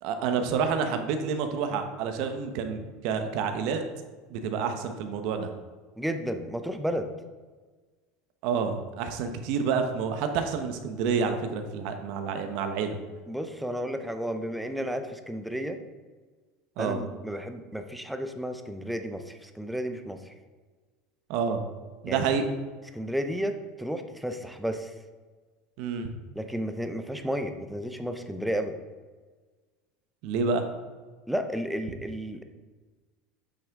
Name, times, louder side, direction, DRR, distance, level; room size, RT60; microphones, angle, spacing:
voice 1, 0.0-3.8 4.3-5.5 8.4-13.0 16.8-17.0 21.3-21.6 22.0-22.4 25.8-26.1 30.2-30.6, right 6 dB, 60° right, 6 dB, 1.0 m, -28 dB
voice 2, 6.0-7.1 13.3-15.8 16.8-20.2 22.1-22.2 22.9-24.9 26.3-28.7 31.3-32.4, equal, ahead, 7 dB, 0.6 m, -32 dB
8.5 x 5.9 x 3.7 m, 1.4 s
supercardioid pair, 145°, 0 cm